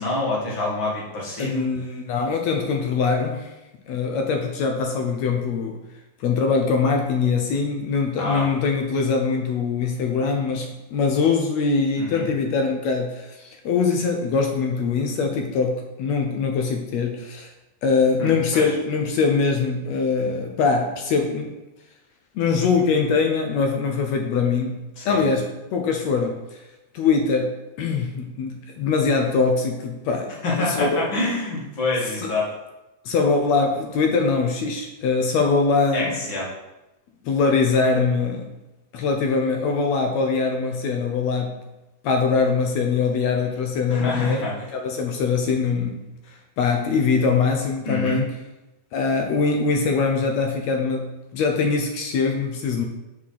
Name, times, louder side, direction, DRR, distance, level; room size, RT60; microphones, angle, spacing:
voice 1, 0.0-1.6 8.2-8.5 12.0-12.3 18.2-18.7 25.0-25.2 30.4-32.5 35.9-36.5 43.9-44.7 47.8-48.2, left 2 dB, 45° left, -4 dB, 2.3 m, -26 dB
voice 2, 1.4-3.5 3.9-5.8 6.2-17.5 17.8-21.5 22.4-26.6 26.9-31.1 32.2-32.3 33.1-36.2 37.3-38.5 38.9-41.6 42.0-46.1 46.6-48.3 48.9-52.8, left 4 dB, 70° left, 3 dB, 1.8 m, -22 dB
6.2 x 4.8 x 5.7 m, 0.99 s
omnidirectional pair, 3.6 m